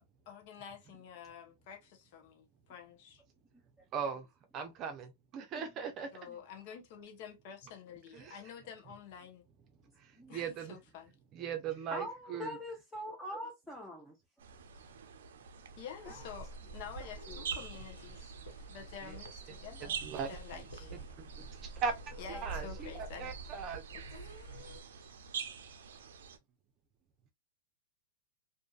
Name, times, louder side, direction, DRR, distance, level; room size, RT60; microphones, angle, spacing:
voice 1, 0.3-3.2 6.1-9.4 10.3-11.1 15.8-16.5 16.7-18.3 18.7-20.0 20.3-21.0 22.2-23.3 23.9-24.0, left 7 dB, 55° left, 0.8 m, -49 dB
voice 2, 3.9-4.3 4.5-6.1 8.1-8.4 10.0-10.8 11.3-12.6 19.8-20.6 21.2-21.3 21.6-21.9 22.3-23.8, right 6 dB, 35° right, 0.6 m, -39 dB
voice 3, 11.9-14.2 16.1-16.2 17.0-17.4, equal, 5° left, 0.7 m, -43 dB
sound 1, 14.4-26.4, right 7 dB, 80° right, 0.4 m, -47 dB
sound 2, 16.0-24.8, right 3 dB, 90° left, 1.3 m, -47 dB
2.7 x 2.5 x 2.3 m
hypercardioid pair, 130°, 0 cm